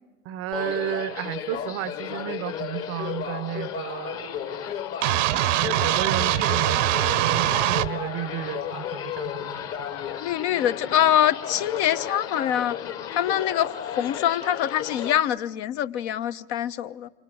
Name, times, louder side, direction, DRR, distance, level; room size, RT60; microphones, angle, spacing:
voice 1, 0.2-4.7 5.3-10.2, right 13 dB, 35° right, 0.8 m, -33 dB
sound 1, 0.5-15.2, left 8 dB, 35° left, 1.6 m, -33 dB
sound 2, 5.0-7.9, right 15 dB, 60° right, 0.9 m, -23 dB
voice 2, 10.2-12.8 13.1-17.1, left 11 dB, 50° left, 1.0 m, -24 dB
27.5 x 24.5 x 7.8 m
hypercardioid pair, 110°, 42 cm